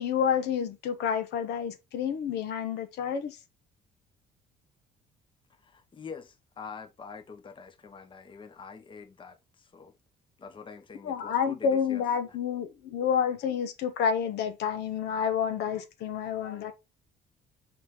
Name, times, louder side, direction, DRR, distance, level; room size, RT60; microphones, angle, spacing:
voice 1, 0.0-3.4 11.0-16.7, left 7 dB, 80° left, 1.2 m, -29 dB
voice 2, 5.6-9.9 10.4-12.0, left 5 dB, 30° left, 1.1 m, -45 dB
5.9 x 4.3 x 3.8 m
cardioid pair, 110°, 17 cm